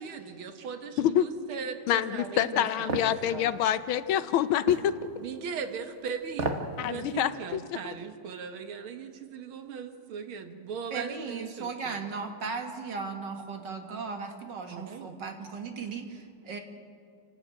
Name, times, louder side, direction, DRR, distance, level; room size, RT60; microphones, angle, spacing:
voice 1, 0.0-3.6 5.2-12.0 14.7-15.2, right 6 dB, 85° right, 7 dB, 2.2 m, -39 dB
voice 2, 1.9-4.9 6.8-7.6, left 10 dB, 85° left, 13 dB, 1.6 m, -26 dB
sound 1, 2.9-3.1 4.7-4.9 6.3-6.7 7.1-7.2, right 3 dB, 40° right, 1.5 m, -31 dB
voice 3, 10.9-16.6, right 5 dB, 60° right, 5 dB, 2.3 m, -37 dB
28.5 x 12.0 x 8.9 m, 2.2 s
omnidirectional pair, 2.2 m